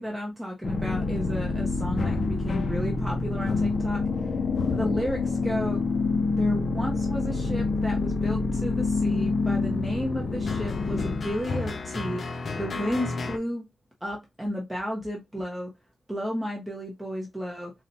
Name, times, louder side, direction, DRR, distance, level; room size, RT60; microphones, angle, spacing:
voice 1, 0.0-4.4 4.7-5.8 6.4-12.2 12.6-13.6 14.0-15.7 16.1-17.7, equal, 5° right, 0.6 m, -33 dB
sound 1, 0.6-13.4, left 3 dB, 45° left, 0.3 m, -27 dB
4.0 x 2.1 x 2.6 m
wide cardioid pair, 165°, 0 cm